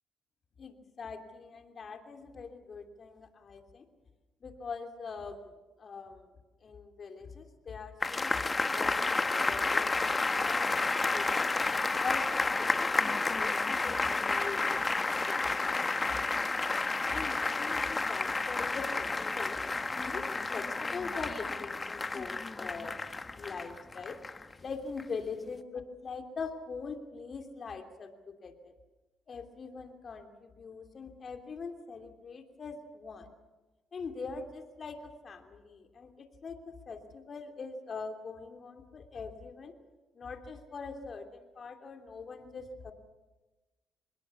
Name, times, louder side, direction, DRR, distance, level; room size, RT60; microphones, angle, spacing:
voice 1, 0.6-3.8 4.4-6.3 6.6-11.5 12.0-15.4 15.6-16.4 17.1-19.6 20.0-20.2 20.5-23.0 23.4-24.2 24.6-28.7 29.3-33.3 33.9-39.7 40.1-42.9, left 4 dB, 45° left, 5 dB, 3.1 m, -43 dB
sound 1, 8.0-24.5 25.0-25.1, left 3 dB, 25° left, 1.0 m, -31 dB
25.0 x 20.5 x 7.1 m, 1.2 s
cardioid pair, 90°, 0 cm